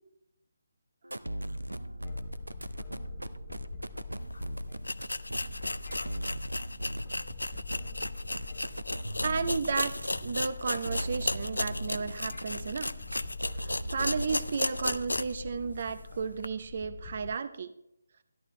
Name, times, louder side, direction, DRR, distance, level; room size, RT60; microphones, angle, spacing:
sound 1, 1.0-15.0, equal, 85° right, 0.6 m, -39 dB
sound 2, 2.0-17.3, left 5 dB, 15° left, 0.8 m, -46 dB
sound 3, 4.3-4.4 4.8-15.4 15.8-15.9 16.4-16.5, left 2 dB, 75° left, 0.4 m, -35 dB
voice 1, 9.2-12.9 13.6-17.7, right 5 dB, 45° right, 13 dB, 0.8 m, -33 dB
13.0 x 11.5 x 3.2 m, 0.79 s
figure-of-eight pair, 150°, 0 cm